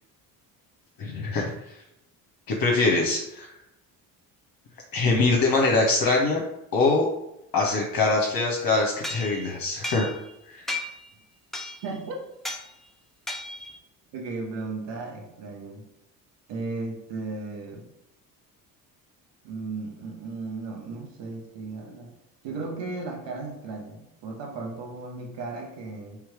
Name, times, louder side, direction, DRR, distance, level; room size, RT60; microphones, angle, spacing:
voice 1, 1.0-1.8 2.5-3.5 4.9-6.4 6.7-7.1 7.5-10.0 10.5-10.8, left 3 dB, 45° left, -1 dB, 1.0 m, -23 dB
sound 1, 9.0-10.4 10.7-11.1 11.5-12.0 12.4-12.7 13.3-13.8, left 1 dB, ahead, 0.8 m, -34 dB
voice 2, 11.8-12.3 14.1-15.8 16.5-17.9 19.4-22.1 22.4-26.2, right 3 dB, 60° right, 1 dB, 1.3 m, -35 dB
3.6 x 3.1 x 4.8 m, 0.85 s
hypercardioid pair, 55°, 48 cm